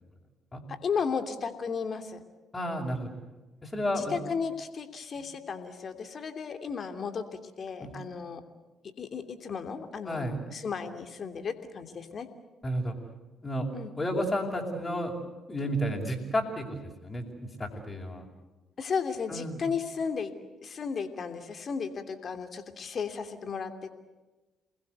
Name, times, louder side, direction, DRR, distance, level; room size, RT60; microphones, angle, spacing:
voice 1, 0.7-2.2 3.9-8.4 8.8-12.3 13.7-13.9 18.8-20.3 20.6-23.9, left 6 dB, 50° left, 7 dB, 3.0 m, -34 dB
voice 2, 2.5-3.1 3.6-4.2 7.8-7.9 10.1-10.4 12.6-13.0 13.4-13.7 13.9-15.2 15.5-18.2 19.3-19.6, equal, 25° left, -3 dB, 5.7 m, -31 dB
29.0 x 20.5 x 8.2 m, 1.2 s
hypercardioid pair, 45°, 0 cm